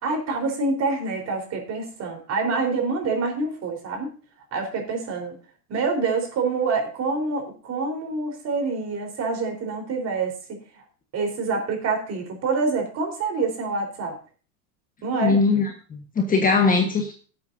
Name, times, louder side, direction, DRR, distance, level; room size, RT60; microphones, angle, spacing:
voice 1, 0.0-4.1 4.5-5.3 5.7-10.3 11.1-14.2 15.0-15.4, right 4 dB, 30° right, 3 dB, 4.2 m, -26 dB
voice 2, 15.2-17.2, left 4 dB, 15° left, 3 dB, 1.4 m, -21 dB
17.5 x 8.4 x 2.7 m, 0.39 s
hypercardioid pair, 120°, 48 cm